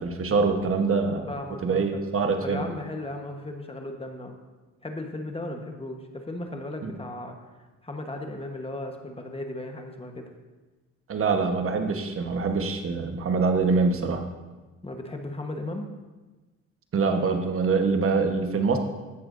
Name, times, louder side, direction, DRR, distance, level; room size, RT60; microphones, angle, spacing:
voice 1, 0.0-1.2 1.6-2.6 6.8-6.9 11.1-14.2 16.9-18.8, right 4 dB, 45° right, 5 dB, 1.3 m, -24 dB
voice 2, 1.3-2.0 2.4-4.4 4.8-7.4 7.8-10.3 14.8-15.9, left 1 dB, 20° left, 4 dB, 1.2 m, -36 dB
14.0 x 8.8 x 2.6 m, 1.2 s
cardioid pair, 90°, 30 cm